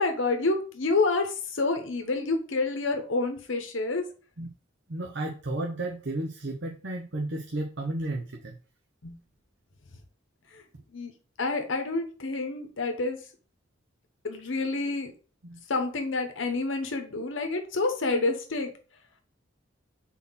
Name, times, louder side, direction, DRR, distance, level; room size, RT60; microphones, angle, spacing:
voice 1, 0.0-4.0 9.0-9.1 10.5-10.6 10.9-11.1 11.4-13.2 14.2-15.1 15.7-18.7, left 3 dB, 75° left, 5 dB, 0.9 m, -28 dB
voice 2, 4.9-8.5 15.4-15.6, right 2 dB, 65° right, 2 dB, 0.8 m, -33 dB
4.2 x 4.1 x 5.6 m, 0.38 s
head